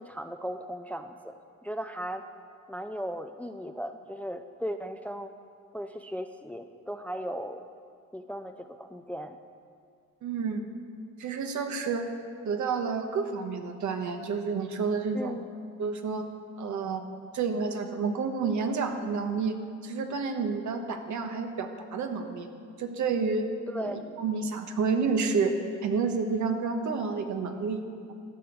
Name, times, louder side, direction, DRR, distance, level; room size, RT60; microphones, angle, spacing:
voice 1, 0.0-1.4 1.6-2.2 2.7-5.3 5.7-7.6 8.1-9.4 15.1-15.4 23.7-24.0, equal, 5° left, 8 dB, 0.5 m, -37 dB
voice 2, 10.2-10.6 11.2-12.1 12.4-15.3 15.8-16.3 16.6-17.0 17.3-19.6 19.8-22.5 22.8-23.5 23.8-25.5 25.8-27.8, right 5 dB, 60° right, 5 dB, 1.3 m, -29 dB
13.0 x 6.1 x 8.4 m, 2.2 s
cardioid pair, 85°, 32 cm